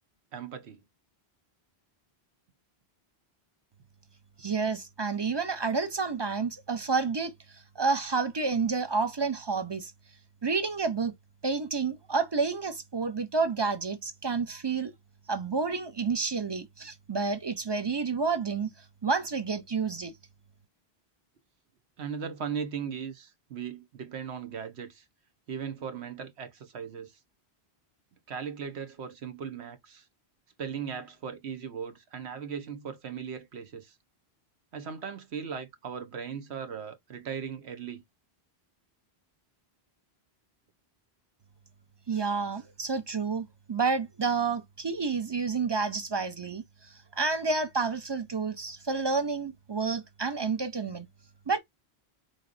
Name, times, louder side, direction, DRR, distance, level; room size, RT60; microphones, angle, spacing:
voice 1, 0.3-0.8 22.0-25.0 25.5-27.2 28.3-30.1 30.6-34.0 34.7-38.0, right 7 dB, 80° right, 1.2 m, -38 dB
voice 2, 4.4-9.9 10.4-11.1 11.4-14.9 15.3-18.7 19.0-20.1 42.1-51.1 51.5-51.6, right 4 dB, 30° right, 0.5 m, -30 dB
4.0 x 3.2 x 2.4 m
omnidirectional pair, 1.1 m